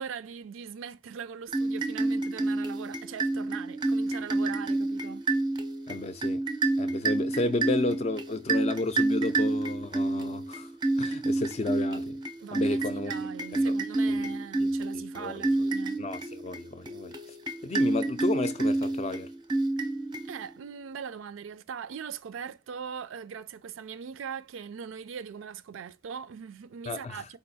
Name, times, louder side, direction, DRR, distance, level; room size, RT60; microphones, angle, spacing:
voice 1, 0.0-5.2 12.4-16.0 20.2-27.4, right 7 dB, 85° right, 0.4 m, -40 dB
sound 1, 1.5-20.7, right 2 dB, 25° right, 0.5 m, -29 dB
voice 2, 5.9-6.4 6.8-10.7 11.0-12.2 12.5-13.1 13.5-13.7 14.1-14.3 14.6-14.7 15.2-15.4 16.0-17.1 17.6-19.3 26.9-27.2, left 2 dB, 35° left, 0.4 m, -32 dB
4.6 x 2.4 x 4.0 m
head